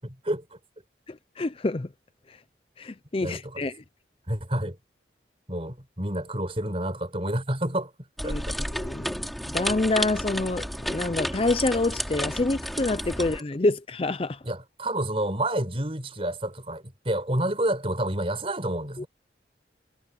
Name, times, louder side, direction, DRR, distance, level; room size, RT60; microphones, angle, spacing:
voice 1, 0.0-0.4 3.2-3.6 4.3-4.8 5.5-7.9 8.2-8.6 14.4-19.1, right 1 dB, 30° right, 5.3 m, -29 dB
voice 2, 1.1-1.9 2.3-2.4 2.8-3.8 8.2-8.5 8.7-9.1 9.5-14.4 19.0-19.1, left 2 dB, 30° left, 0.5 m, -27 dB
sound 1, 8.2-13.4, equal, ahead, 3.5 m, -31 dB
head